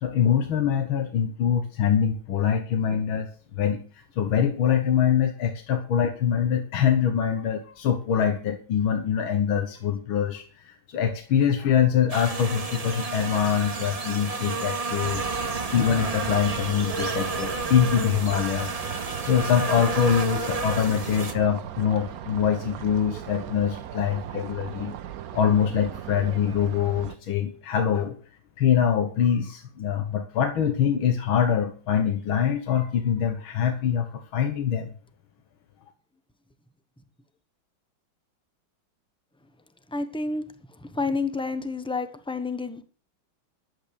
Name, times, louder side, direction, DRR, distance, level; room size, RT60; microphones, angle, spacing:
voice 1, 0.0-3.3 3.6-3.8 4.2-15.4 15.7-18.8 19.3-25.0 25.3-28.2 28.6-34.9, left 8 dB, 85° left, 5 dB, 2.1 m, -24 dB
sound 1, 12.1-21.3, right 3 dB, 25° right, 0.9 m, -31 dB
sound 2, 15.0-27.2, right 11 dB, 65° right, 0.9 m, -37 dB
voice 2, 39.9-40.4 40.8-42.8, left 3 dB, 5° left, 10 dB, 0.5 m, -29 dB
11.5 x 8.6 x 6.7 m, 0.38 s
omnidirectional pair, 2.2 m